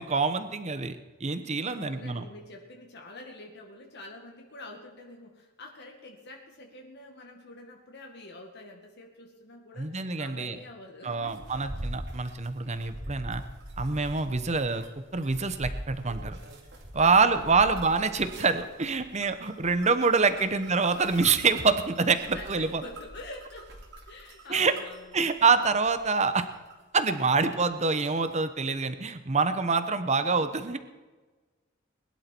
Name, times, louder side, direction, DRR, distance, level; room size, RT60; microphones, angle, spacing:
voice 1, 0.0-2.3 9.8-10.6 11.0-13.4 13.8-14.8 15.1-16.4 16.9-22.8 24.5-24.7 25.1-26.5 26.9-30.8, right 4 dB, 35° right, 10 dB, 1.0 m, -26 dB
voice 2, 1.7-11.5 16.9-18.5 20.4-20.5 22.1-23.7 24.1-25.1 30.1-30.5, left 2 dB, 55° left, 1 dB, 2.0 m, -46 dB
sound 1, 11.2-27.7 27.9-28.3, right 1 dB, 60° right, 2.7 m, -43 dB
21.0 x 11.5 x 4.6 m, 1.3 s
head